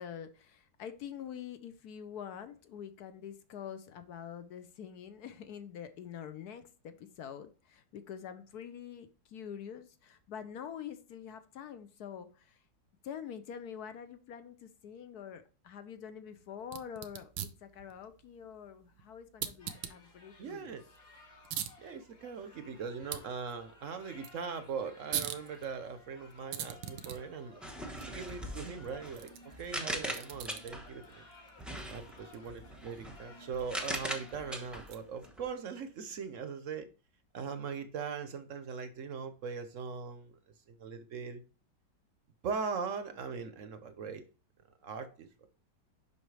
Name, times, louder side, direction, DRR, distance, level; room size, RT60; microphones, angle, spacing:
voice 1, 0.0-12.6 13.0-20.8, left 8 dB, 65° left, 1.1 m, -46 dB
sound 1, 16.6-35.3, right 10 dB, 90° right, 1.5 m, -45 dB
sound 2, 19.6-34.6, left 3 dB, 50° left, 2.3 m, -58 dB
voice 2, 20.4-20.8 21.8-27.6 28.1-29.3 29.6-31.2 31.9-36.9 37.3-40.3 40.7-41.4 42.4-44.2 44.8-45.5, right 5 dB, 55° right, 0.9 m, -40 dB
sound 3, 27.6-31.0 31.6-35.5, equal, ahead, 0.6 m, -41 dB
7.1 x 5.7 x 3.3 m
omnidirectional pair, 2.0 m